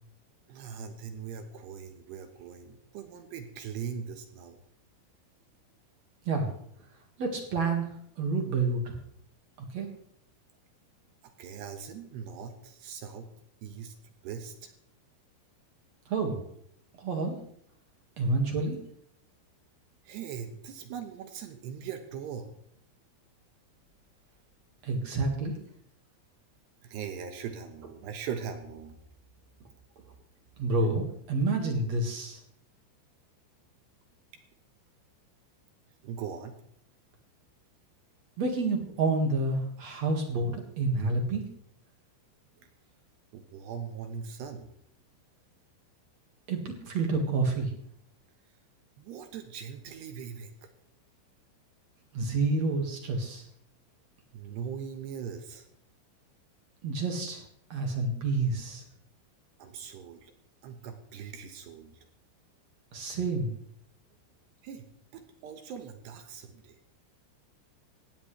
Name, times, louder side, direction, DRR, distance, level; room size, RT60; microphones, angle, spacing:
voice 1, 0.5-4.6 11.2-13.3 13.6-14.7 20.0-22.5 26.8-29.0 36.0-36.6 43.3-44.7 49.0-50.7 54.3-55.7 59.6-60.3 60.6-62.1 64.6-64.9 65.1-66.8, right 7 dB, 70° right, 6 dB, 2.8 m, -40 dB
voice 2, 7.2-9.0 9.7-9.9 16.1-16.4 17.0-17.4 18.2-18.8 24.8-25.5 30.6-32.4 38.4-41.4 46.5-47.7 52.1-53.5 56.8-57.4 57.7-58.8 62.9-63.5, right 3 dB, 55° right, 3 dB, 1.9 m, -29 dB
18.0 x 16.5 x 3.3 m, 0.68 s
omnidirectional pair, 5.9 m